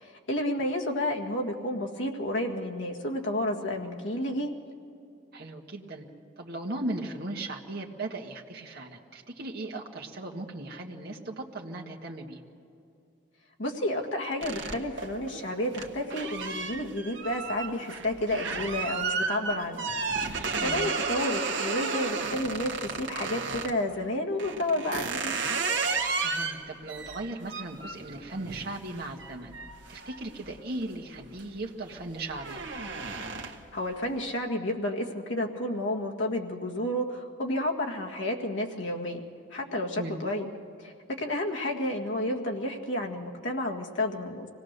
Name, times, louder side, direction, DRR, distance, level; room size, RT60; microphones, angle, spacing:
voice 1, 0.0-4.5 13.6-19.9 20.3-25.4 33.7-39.2 39.5-40.5 40.8-40.9 41.2-44.5, left 1 dB, 70° left, 1 dB, 1.9 m, -31 dB
voice 2, 5.3-6.0 6.4-12.4 20.6-20.9 26.2-29.5 29.9-32.6 40.0-40.2, right 2 dB, 55° right, 0 dB, 1.7 m, -37 dB
sound 1, 14.4-23.8 24.4-30.8 31.2-31.6 31.9-33.8, right 4 dB, 75° right, 1.4 m, -33 dB
25.0 x 18.0 x 6.7 m, 2.6 s
head